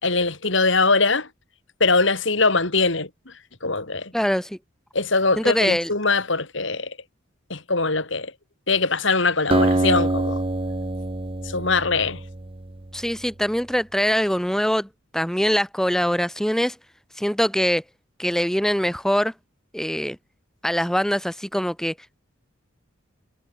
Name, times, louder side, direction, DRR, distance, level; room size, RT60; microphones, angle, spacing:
voice 1, 0.0-1.3 1.8-3.3 3.6-4.1 4.9-7.0 7.5-8.3 8.7-10.5 11.4-12.2, left 3 dB, 65° left, 3.5 m, -22 dB
voice 2, 4.1-4.6 5.4-5.9 12.9-14.9 15.1-16.8 17.2-17.8 18.2-19.3 19.7-20.2 20.6-21.9, equal, ahead, 1.1 m, -23 dB
Acoustic guitar, 9.5-13.1, right 2 dB, 25° right, 0.8 m, -25 dB
head